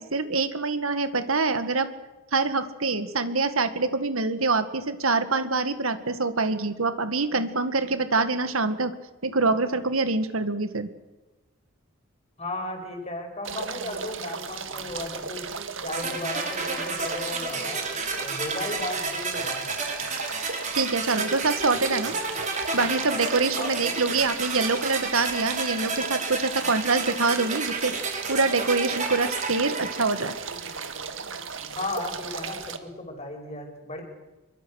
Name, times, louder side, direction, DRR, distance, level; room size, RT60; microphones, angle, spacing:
voice 1, 0.0-1.9 2.3-8.9 9.2-10.9 20.7-22.1 22.7-27.9 28.3-30.4, right 3 dB, 80° right, 10 dB, 1.9 m, -25 dB
voice 2, 12.4-15.5 15.8-17.9 18.2-19.7 23.5-23.7 31.8-34.0, left 2 dB, 30° left, 3 dB, 5.5 m, -35 dB
sound 1, 13.4-32.8, right 6 dB, 60° right, 2.0 m, -36 dB
sound 2, 15.9-30.8, right 3 dB, 35° right, 4.9 m, -31 dB
26.0 x 23.5 x 6.5 m, 1.1 s
head